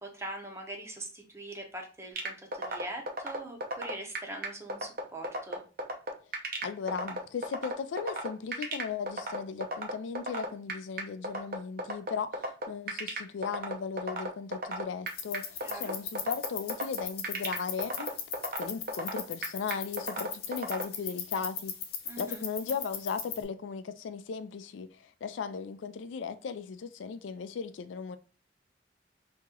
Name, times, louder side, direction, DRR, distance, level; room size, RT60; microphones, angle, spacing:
voice 1, 0.0-5.6 15.6-15.9 22.1-22.4, right 1 dB, 15° right, 0.7 m, -42 dB
sound 1, 2.2-20.8, right 1 dB, 50° right, 0.7 m, -33 dB
voice 2, 6.6-18.1 18.6-21.8 22.2-28.2, left 6 dB, 90° left, 0.4 m, -37 dB
sound 2, 15.1-23.4, left 7 dB, 55° left, 0.7 m, -39 dB
2.9 x 2.9 x 3.6 m
head